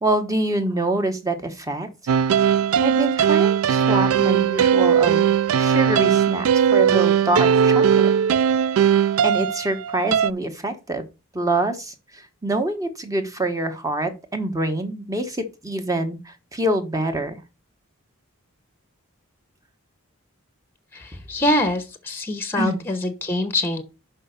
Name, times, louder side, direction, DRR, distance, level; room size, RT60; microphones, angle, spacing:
voice 1, 0.0-1.9 2.8-5.3 5.6-8.1 8.9-11.1 11.3-17.4 22.6-22.8, right 2 dB, 15° right, 1.0 m, -25 dB
sound 1, 2.1-10.3, right 8 dB, 75° right, 0.3 m, -18 dB
voice 2, 20.9-23.8, left 1 dB, 10° left, 0.8 m, -24 dB
5.6 x 5.5 x 6.7 m
head